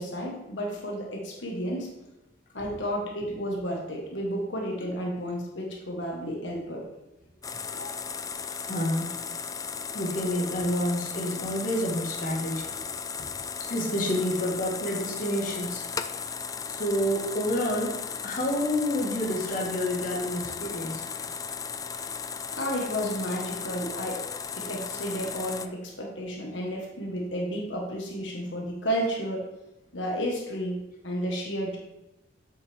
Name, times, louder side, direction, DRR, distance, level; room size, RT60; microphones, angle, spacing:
voice 1, 0.0-1.9 2.5-6.8 7.7-8.1 22.5-29.5 29.9-31.8, equal, 75° left, -1 dB, 1.5 m, -32 dB
sound 1, 7.4-25.7, left 6 dB, 20° left, 0.3 m, -36 dB
voice 2, 8.6-9.1 9.9-12.6 13.7-15.8 16.7-17.9 18.2-21.3, equal, 50° left, -2 dB, 1.6 m, -29 dB
7.9 x 6.5 x 3.6 m, 0.94 s
head